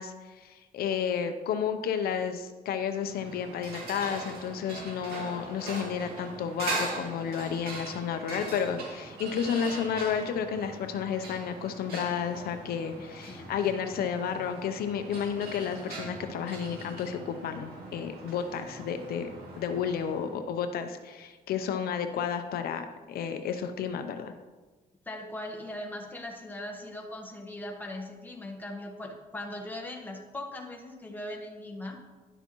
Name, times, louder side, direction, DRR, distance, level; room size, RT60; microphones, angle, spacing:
voice 1, 0.0-19.3 19.6-24.3, left 7 dB, 80° left, 8 dB, 0.6 m, -32 dB
sound 1, 2.9-20.4, right 2 dB, 80° right, 2.4 m, -41 dB
voice 2, 25.0-32.0, left 1 dB, 10° left, 0 dB, 1.3 m, -39 dB
11.0 x 6.9 x 3.0 m, 1.3 s
cardioid pair, 100°, 16 cm